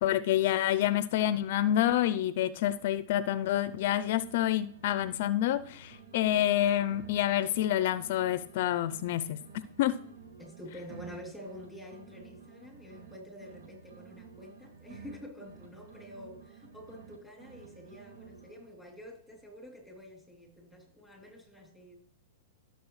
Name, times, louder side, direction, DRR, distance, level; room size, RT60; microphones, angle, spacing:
voice 1, 0.0-9.4 9.8-10.0, left 12 dB, 55° left, 15 dB, 0.5 m, -28 dB
sound 1, 3.6-5.2 5.4-9.2 9.4-13.2 13.4-17.2 17.4-18.8, right 5 dB, 80° right, 2.2 m, -52 dB
voice 2, 10.4-21.9, equal, ahead, 1 dB, 3.0 m, -48 dB
16.0 x 6.7 x 3.2 m, 0.64 s
hypercardioid pair, 135°, 0 cm